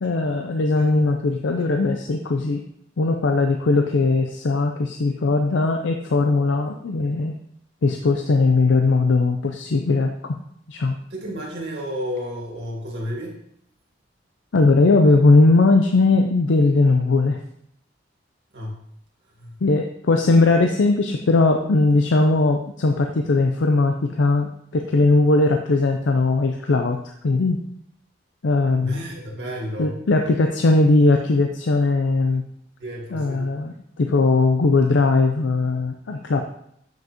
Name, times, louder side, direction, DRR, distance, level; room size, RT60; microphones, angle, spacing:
voice 1, 0.0-2.6 3.0-7.3 7.8-10.4 10.7-11.0 14.5-17.4 19.6-27.6 28.4-29.0 29.8-32.4 33.1-36.4, left 3 dB, 90° left, 4 dB, 0.5 m, -19 dB
voice 2, 11.1-13.3 18.5-18.8 19.4-19.5 28.8-29.9 32.8-33.5, equal, 65° right, -3 dB, 2.0 m, -31 dB
7.5 x 6.1 x 2.9 m, 0.71 s
head